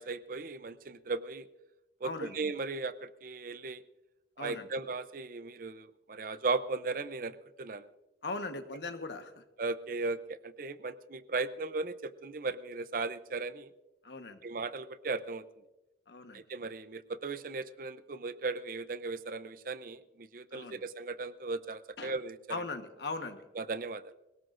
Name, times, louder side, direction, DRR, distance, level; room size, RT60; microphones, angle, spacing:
voice 1, 0.0-1.5 2.0-3.8 4.4-7.9 9.6-13.7 14.4-15.4 16.3-22.6 23.6-24.1, right 3 dB, 50° right, 13 dB, 0.6 m, -37 dB
voice 2, 2.0-2.3 4.4-4.7 8.2-9.4 14.0-14.4 16.1-16.4 20.5-20.8 22.0-22.1 22.5-23.4, left 3 dB, 75° left, 7 dB, 1.3 m, -39 dB
26.5 x 17.5 x 2.6 m, 1.0 s
head